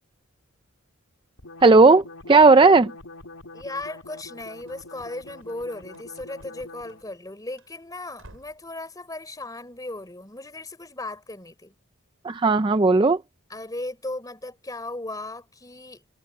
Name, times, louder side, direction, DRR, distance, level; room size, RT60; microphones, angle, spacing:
sound 1, 1.4-7.1, left 2 dB, 90° left, 3.6 m, -44 dB
voice 1, 1.6-2.9 12.2-13.2, right 3 dB, 25° right, 0.4 m, -15 dB
voice 2, 3.5-11.7 13.5-16.0, left 2 dB, 15° left, 3.7 m, -36 dB
Run / Slam, 4.4-7.3 7.5-7.7 8.2-8.7, right 1 dB, 70° right, 7.2 m, -54 dB
head